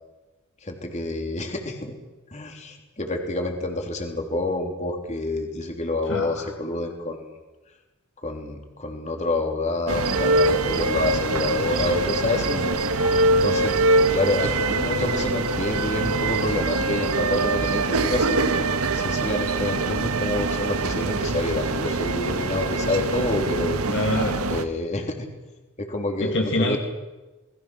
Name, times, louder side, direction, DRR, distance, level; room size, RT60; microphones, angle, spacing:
voice 1, 0.6-2.0 2.3-7.2 8.2-12.7 13.3-13.7 14.1-23.8 24.5-25.3 25.8-26.8, left 2 dB, 35° left, 3 dB, 3.4 m, -28 dB
voice 2, 6.1-6.5 11.7-11.9 23.9-24.4 26.2-26.8, left 1 dB, 60° left, 2 dB, 2.4 m, -26 dB
sound 1, 9.9-24.6, right 2 dB, 85° right, 1.6 m, -23 dB
27.5 x 20.5 x 6.3 m, 1.1 s
head